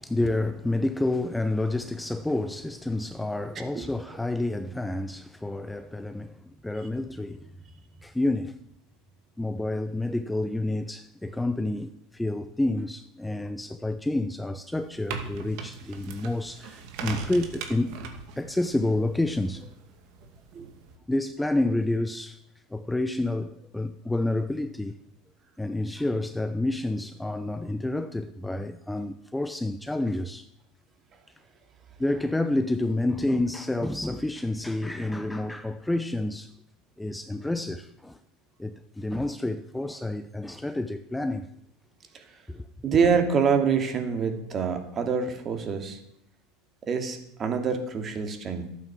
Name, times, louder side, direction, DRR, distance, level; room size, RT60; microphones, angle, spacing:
voice 1, 0.0-7.5 8.0-8.6 9.4-18.0 18.4-19.7 21.1-22.4 22.7-25.0 25.6-30.5 32.0-36.5 37.0-38.2 38.6-41.5 42.5-42.7, left 2 dB, 5° left, 0.8 m, -29 dB
sound 1, 14.7-20.9, right 5 dB, 65° right, 2.3 m, -40 dB
voice 2, 42.8-46.0 46.8-48.7, right 6 dB, 35° right, 2.6 m, -26 dB
12.5 x 9.1 x 7.5 m
supercardioid pair, 100°, 0 cm